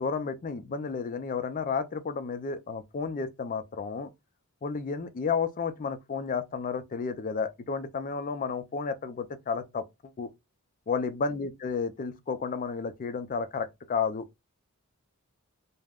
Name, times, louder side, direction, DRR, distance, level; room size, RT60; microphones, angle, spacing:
voice 1, 0.0-4.1 4.6-9.8 10.2-10.3 10.9-14.4, left 5 dB, 35° left, 0.3 m, -32 dB
2.3 x 2.0 x 3.4 m
head